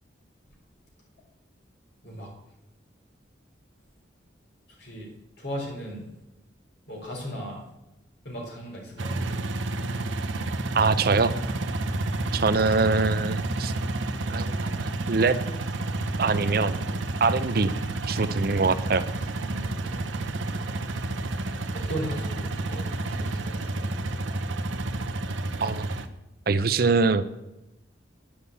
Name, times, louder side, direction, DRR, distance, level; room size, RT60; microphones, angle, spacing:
voice 1, 5.4-6.0 6.9-7.6 8.2-9.2 19.4-20.0 21.7-22.8 23.1-23.9, equal, 60° left, -2 dB, 4.0 m, -36 dB
sound 1, 9.0-26.1, right 2 dB, 85° right, 0.8 m, -30 dB
voice 2, 10.7-11.3 12.3-13.7 14.3-15.4 16.2-16.7 17.2-17.7 18.1-19.0 25.6-26.0 26.5-27.2, right 4 dB, 50° right, 13 dB, 0.5 m, -23 dB
10.0 x 5.5 x 8.2 m, 0.94 s
head